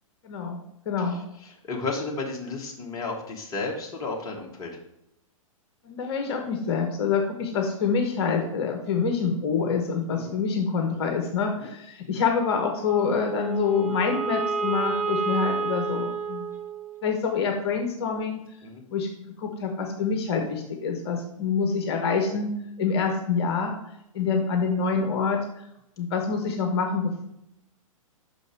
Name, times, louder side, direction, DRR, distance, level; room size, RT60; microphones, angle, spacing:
voice 1, 0.2-0.6 0.9-1.2 5.8-16.5 17.0-18.4 18.9-19.1 19.4-22.5 22.8-23.8 24.1-25.4 26.0-27.2, left 5 dB, 45° left, 3 dB, 1.0 m, -26 dB
voice 2, 1.0-4.7 10.1-10.4 11.6-11.7 18.6-18.8, left 3 dB, 20° left, 0 dB, 1.3 m, -33 dB
Wind instrument woodwind instrument, 12.8-17.2, right 4 dB, 80° right, 1.5 m, -30 dB
6.0 x 5.2 x 4.5 m, 0.79 s
figure-of-eight pair, 110°, 18 cm